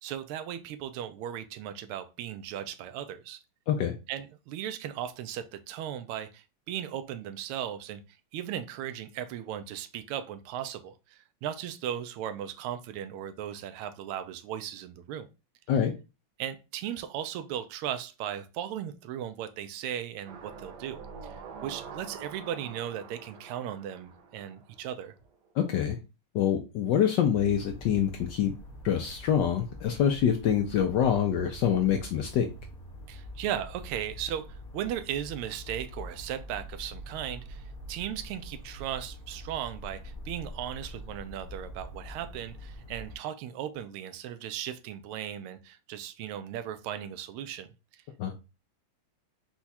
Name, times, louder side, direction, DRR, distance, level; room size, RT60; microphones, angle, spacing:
voice 1, 0.0-3.4 4.1-8.0 8.3-15.3 16.4-25.1 33.1-47.7 47.9-48.0, right 10 dB, 85° right, 1.4 m, -37 dB
sound 1, 20.3-25.1 25.5-25.6, right 5 dB, 65° right, 1.1 m, -46 dB
voice 2, 25.6-26.0 26.3-28.5 28.8-32.5 48.2-48.3, left 9 dB, 75° left, 1.0 m, -25 dB
sound 2, 27.3-43.1, equal, 35° left, 0.6 m, -45 dB
4.5 x 2.3 x 4.1 m
omnidirectional pair, 2.4 m